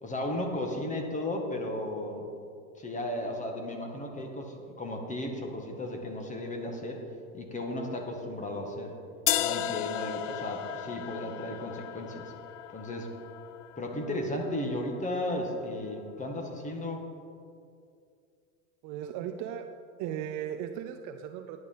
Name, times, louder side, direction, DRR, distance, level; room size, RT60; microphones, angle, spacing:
voice 1, 0.0-2.3 2.8-7.0 7.3-8.9 9.4-12.3 12.7-13.1 13.8-17.1, left 1 dB, 15° left, 2 dB, 1.9 m, -35 dB
sound 1, 9.3-15.2, left 12 dB, 55° left, 0.7 m, -35 dB
voice 2, 18.8-19.7 20.0-21.6, right 10 dB, 40° right, 6 dB, 0.7 m, -36 dB
10.5 x 9.2 x 5.6 m, 2.4 s
hypercardioid pair, 110°, 46 cm